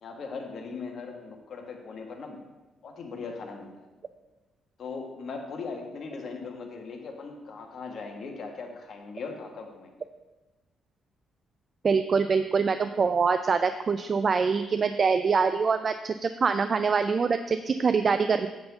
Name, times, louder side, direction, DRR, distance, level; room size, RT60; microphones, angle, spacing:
voice 1, 0.0-2.4 2.8-3.9 4.8-9.9, left 4 dB, 60° left, 2 dB, 1.6 m, -39 dB
voice 2, 11.8-18.5, right 5 dB, 40° right, 9 dB, 0.4 m, -24 dB
8.8 x 3.9 x 7.0 m, 1.2 s
cardioid pair, 90°, 0 cm